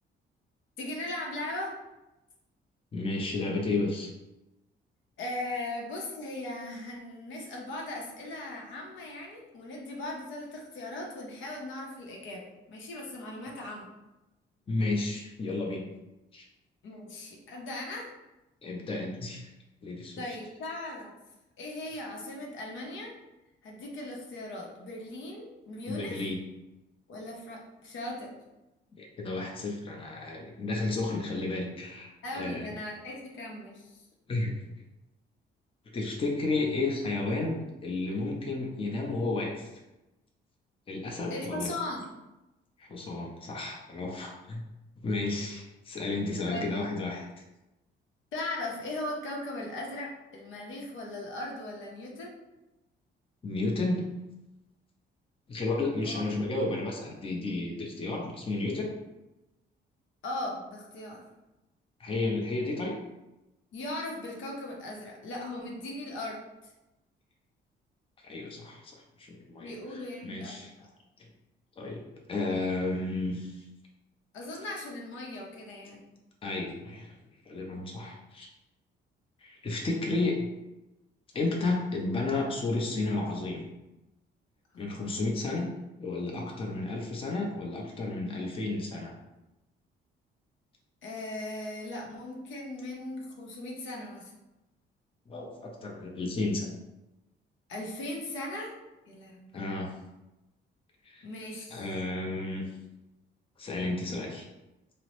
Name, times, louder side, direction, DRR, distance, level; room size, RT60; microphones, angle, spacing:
voice 1, 0.8-1.7 5.2-13.9 16.8-18.1 20.2-21.1 21.6-23.2 23.6-26.3 27.1-28.3 32.2-34.0 41.3-42.1 46.5-46.7 48.3-52.4 56.0-56.3 60.2-61.2 63.7-66.7 69.5-70.6 74.3-76.1 84.7-85.1 91.0-94.3 97.7-98.7 99.1-99.5 101.2-101.9, left 1 dB, 75° left, -1 dB, 0.7 m, -38 dB
voice 2, 2.9-4.1 14.7-15.8 16.3-16.4 18.6-19.5 19.8-20.2 25.9-26.4 29.0-32.7 34.3-34.6 35.9-39.7 40.9-41.7 42.8-44.6 45.0-47.2 53.4-54.0 55.5-58.9 62.0-63.0 68.2-68.9 69.2-70.9 71.8-72.0 72.3-73.6 76.4-77.1 77.5-78.5 79.4-80.5 81.3-83.7 84.8-85.7 86.0-89.1 95.3-96.7 99.5-99.9 101.0-101.2 101.7-102.7 103.6-104.4, left 2 dB, 30° left, -1 dB, 0.6 m, -32 dB
2.8 x 2.0 x 2.9 m, 0.98 s
cardioid pair, 90°, 20 cm